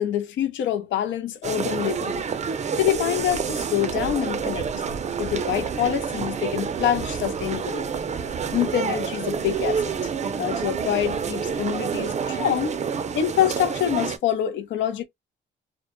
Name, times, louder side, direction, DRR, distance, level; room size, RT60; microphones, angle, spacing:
voice 1, 0.0-2.2 2.8-4.7 5.2-7.9 8.5-10.1 10.4-12.8 13.1-15.0, left 11 dB, 70° left, 0.5 m, -26 dB
sound 1, 1.4-14.2, right 6 dB, 35° right, 0.5 m, -28 dB
2.1 x 2.1 x 2.9 m
cardioid pair, 90°, 20 cm